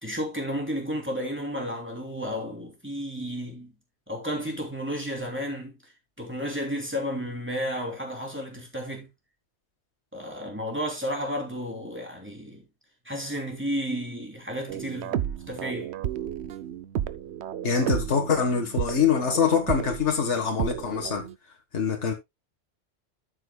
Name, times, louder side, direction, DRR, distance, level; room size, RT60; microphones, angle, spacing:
voice 1, 0.0-3.7 4.1-5.8 6.2-9.1 10.1-12.6 13.0-15.2 15.5-15.9, equal, 10° right, 3.0 m, -32 dB
sound 1, 14.7-21.3, right 10 dB, 75° right, 0.9 m, -32 dB
voice 2, 17.6-21.3 21.7-22.1, left 6 dB, 80° left, 1.8 m, -24 dB
13.5 x 6.5 x 2.3 m
omnidirectional pair, 1.2 m